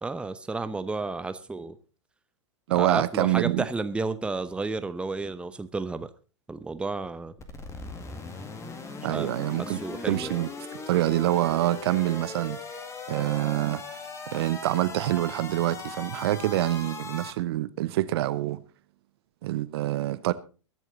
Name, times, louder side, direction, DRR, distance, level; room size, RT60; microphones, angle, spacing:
voice 1, 0.0-1.7 2.7-6.1 6.5-7.3 9.1-9.3 9.6-10.4, right 3 dB, 5° right, 0.8 m, -31 dB
voice 2, 2.7-3.7 9.0-9.8 10.0-10.5 10.9-12.6 13.1-13.8 14.3-18.6 19.4-20.3, right 15 dB, 55° right, 0.8 m, -26 dB
sound 1, 7.4-17.3, left 3 dB, 20° left, 2.0 m, -39 dB
22.0 x 7.5 x 3.9 m
figure-of-eight pair, 100°, 16 cm